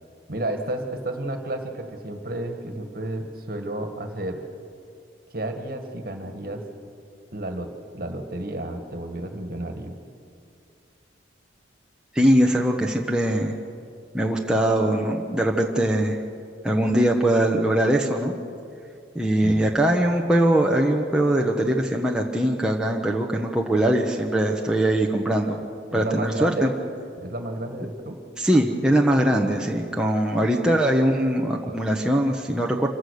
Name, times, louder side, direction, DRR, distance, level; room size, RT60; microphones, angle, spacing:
voice 1, 0.3-4.4 5.3-6.6 7.3-10.0 19.4-19.7 25.9-26.7 27.2-28.2, right 1 dB, 50° right, 5 dB, 1.8 m, -32 dB
voice 2, 12.1-13.5 14.1-16.2 16.6-18.3 19.1-25.6 25.9-26.7 28.4-32.9, right 1 dB, 5° right, -1 dB, 1.0 m, -21 dB
26.0 x 15.5 x 6.5 m, 2.4 s
head